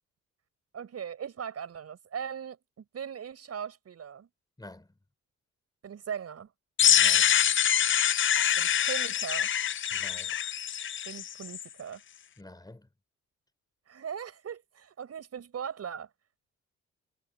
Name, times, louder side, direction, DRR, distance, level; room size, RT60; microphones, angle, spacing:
voice 1, 0.7-4.3 5.8-6.5 8.6-9.5 11.0-12.0 13.9-16.1, right 8 dB, 55° right, 5.6 m, -39 dB
sound 1, 6.8-11.6, left 9 dB, 40° left, 0.6 m, -25 dB
voice 2, 7.0-7.3 9.9-10.4 12.4-12.9, left 1 dB, 15° left, 6.0 m, -48 dB
cardioid pair, 90°, 30 cm